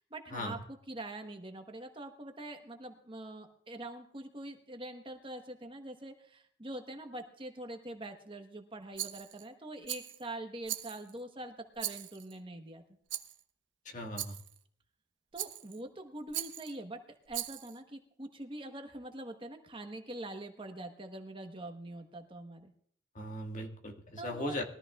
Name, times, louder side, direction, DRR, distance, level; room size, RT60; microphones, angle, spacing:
voice 1, 0.1-12.8 15.3-17.0 17.3-22.7 24.2-24.6, right 1 dB, 30° right, 5 dB, 1.1 m, -44 dB
Rattle, 9.0-9.5 9.9-10.2 10.7-11.2 11.8-12.3 13.1-13.4 14.2-14.6 15.4-15.8 16.3-16.7 17.3-17.8, right 13 dB, 90° right, 0.9 m, -40 dB
voice 2, 13.8-14.3 23.1-24.6, left 1 dB, 40° left, 2 dB, 1.6 m, -38 dB
21.5 x 14.0 x 2.4 m, 0.64 s
head